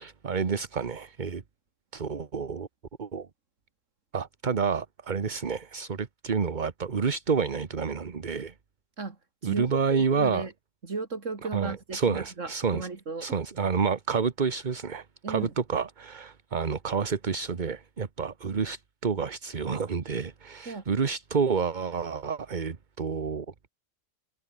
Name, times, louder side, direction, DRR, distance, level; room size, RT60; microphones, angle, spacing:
voice 1, 0.0-1.4 1.9-2.7 3.0-3.3 4.1-8.5 9.4-10.5 11.5-12.9 13.2-23.5, right 5 dB, 40° right, 1.2 m, -29 dB
voice 2, 9.0-10.5 10.8-13.3 15.2-15.5 20.7-20.8, right 4 dB, 70° right, 2.9 m, -35 dB
omnidirectional pair, 1.3 m